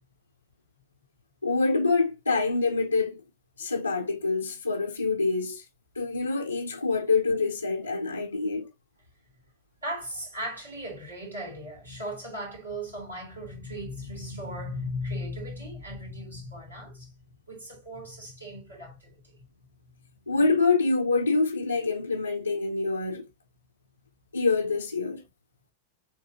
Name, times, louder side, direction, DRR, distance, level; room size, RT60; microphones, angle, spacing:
voice 1, 1.4-3.2 3.6-5.6 5.9-8.7 20.3-23.3 24.3-25.2, left 3 dB, 85° left, 0.6 m, -26 dB
voice 2, 9.8-17.1 17.5-19.4, equal, 80° right, 3.0 m, -37 dB
7.1 x 2.7 x 2.7 m
figure-of-eight pair, 90°, 0 cm